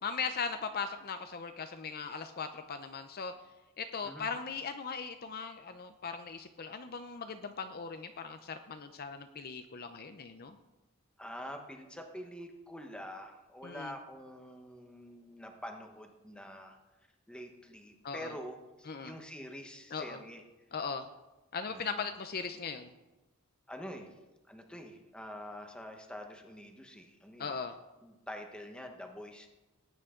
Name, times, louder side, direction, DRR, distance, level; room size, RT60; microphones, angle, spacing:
voice 1, 0.0-3.3 3.8-10.6 13.6-13.9 18.0-18.3 18.9-19.1 19.9-20.2 20.7-21.1 21.5-22.9 27.4-27.8, left 5 dB, 45° left, 8 dB, 0.6 m, -39 dB
voice 2, 11.2-16.8 17.3-20.4 21.7-22.0 23.7-24.1 24.5-27.6 28.0-29.5, equal, 5° left, 4 dB, 1.2 m, -46 dB
18.0 x 9.4 x 3.8 m, 1.1 s
head